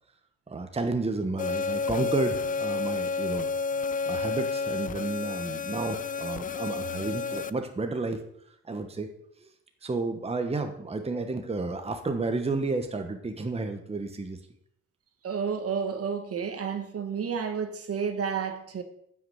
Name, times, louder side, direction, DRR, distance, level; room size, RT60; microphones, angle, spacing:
voice 1, 0.5-3.5 4.1-8.2 8.6-9.1 9.4-9.5 9.8-14.4, right 3 dB, 20° right, 1.2 m, -31 dB
sound 1, 1.4-7.5, left 4 dB, 25° left, 0.4 m, -30 dB
voice 2, 15.2-18.8, right 6 dB, 50° right, 1.6 m, -31 dB
9.7 x 6.1 x 7.8 m
cardioid pair, 90°, 30 cm